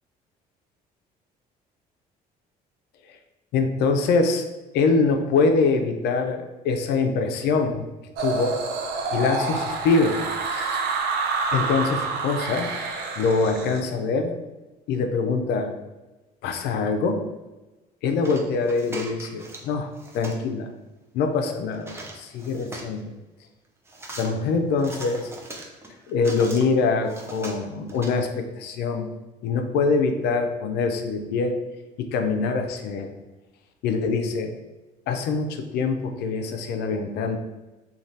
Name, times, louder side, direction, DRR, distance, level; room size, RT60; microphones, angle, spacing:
voice 1, 3.5-4.4 4.7-7.9 8.2-8.6 9.1-10.8 11.5-12.7 13.2-14.4 14.9-15.7 16.4-17.2 18.0-19.9 20.1-20.7 21.1-23.1 24.2-25.3 26.1-29.1 29.4-31.6 32.0-33.1 33.8-34.5 35.1-37.4, left 4 dB, 75° left, 6 dB, 0.4 m, -24 dB
sound 1, 8.2-13.8, right 4 dB, 85° right, 0.4 m, -28 dB
sound 2, 18.2-19.7 19.9-20.4 21.7-23.0 23.9-24.3 24.8-26.6 27.0-28.1, right 2 dB, 15° right, 0.4 m, -40 dB
2.6 x 2.3 x 3.2 m, 1.1 s
cardioid pair, 110°, 17 cm